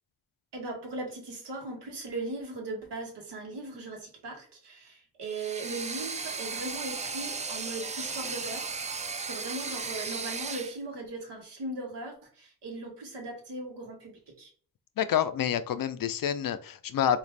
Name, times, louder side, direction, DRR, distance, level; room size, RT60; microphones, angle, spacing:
voice 1, 0.5-8.7 9.3-14.5, right 2 dB, 80° right, 1.1 m, -38 dB
sound 1, 5.2-10.8, right 4 dB, 20° right, 0.3 m, -36 dB
voice 2, 15.0-17.2, left 9 dB, 55° left, 0.5 m, -28 dB
3.5 x 2.5 x 3.2 m
cardioid pair, 50°, 41 cm